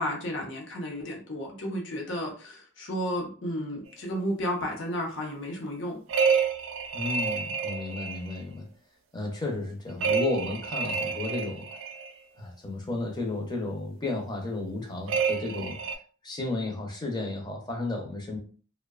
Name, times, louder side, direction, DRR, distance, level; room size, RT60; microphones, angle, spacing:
voice 1, 0.0-6.0, equal, 65° left, -1 dB, 0.7 m, -32 dB
sound 1, 6.1-8.4 10.0-12.1 15.1-15.9, right 6 dB, 90° right, 0.4 m, -28 dB
voice 2, 6.9-8.7 9.1-11.7 12.4-15.8 16.2-18.4, left 2 dB, 20° left, 1 dB, 0.5 m, -33 dB
2.7 x 2.1 x 2.3 m, 0.41 s
head